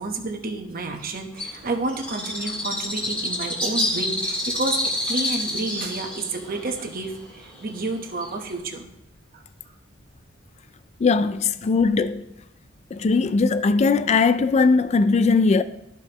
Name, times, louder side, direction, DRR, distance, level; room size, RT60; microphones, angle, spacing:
voice 1, 0.0-4.8 5.1-8.9 9.3-9.4, right 3 dB, 45° right, 1.0 m, -30 dB
Bird, 1.4-8.6, left 1 dB, 5° left, 1.9 m, -28 dB
voice 2, 11.0-12.2 12.9-15.6, left 4 dB, 35° left, 0.3 m, -19 dB
13.5 x 4.8 x 2.9 m
head